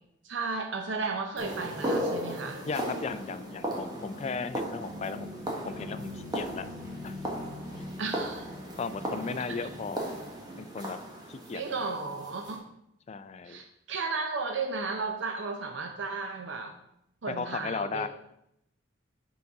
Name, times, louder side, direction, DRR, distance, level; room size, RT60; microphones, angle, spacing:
voice 1, 0.2-2.6 8.0-8.5 9.6-9.7 11.5-12.6 13.4-16.7 17.2-18.1, right 4 dB, 65° right, 4 dB, 0.6 m, -34 dB
sound 1, 1.4-12.6, equal, 20° right, 1.2 m, -37 dB
sound 2, 2.3-10.9, left 1 dB, 5° right, 1.4 m, -44 dB
voice 2, 2.7-6.7 7.0-7.2 8.8-10.0 10.6-11.0 11.3-11.6 13.1-13.6 17.3-18.1, left 5 dB, 35° left, 12 dB, 0.3 m, -36 dB
6.0 x 4.0 x 5.8 m, 0.80 s
head